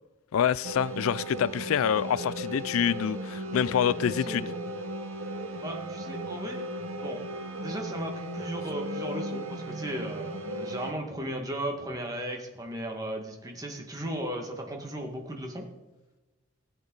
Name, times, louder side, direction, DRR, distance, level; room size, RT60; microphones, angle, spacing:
voice 1, 0.3-4.5, left 8 dB, 85° left, 0.4 m, -26 dB
sound 1, 0.6-10.9, right 1 dB, 80° right, 1.2 m, -36 dB
voice 2, 4.0-4.5 5.6-6.7 7.0-7.2 7.6-15.6, right 1 dB, 15° right, 1.8 m, -36 dB
17.0 x 9.0 x 4.0 m
head